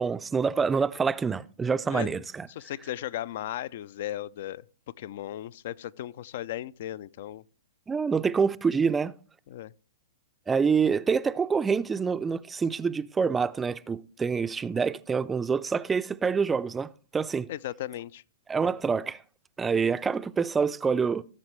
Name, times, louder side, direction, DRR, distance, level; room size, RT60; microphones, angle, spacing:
voice 1, 0.0-2.5 7.9-9.1 10.5-17.5 18.5-19.2 19.6-21.2, right 5 dB, 15° right, 0.4 m, -26 dB
voice 2, 2.5-4.6 5.0-7.4 9.5-9.7 17.5-18.2, left 12 dB, 55° left, 0.4 m, -36 dB
16.0 x 7.3 x 3.2 m
hypercardioid pair, 115°, 0 cm